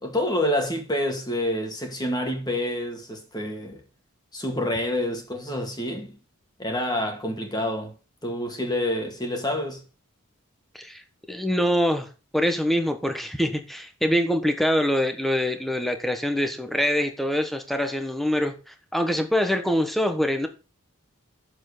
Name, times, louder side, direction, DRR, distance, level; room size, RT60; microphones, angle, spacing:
voice 1, 0.0-3.8 4.3-6.2 6.6-7.9 8.2-9.8, left 1 dB, 20° left, 2.2 m, -27 dB
voice 2, 11.3-12.1 12.3-18.5 18.9-20.5, equal, ahead, 1.2 m, -24 dB
7.8 x 7.3 x 6.7 m
head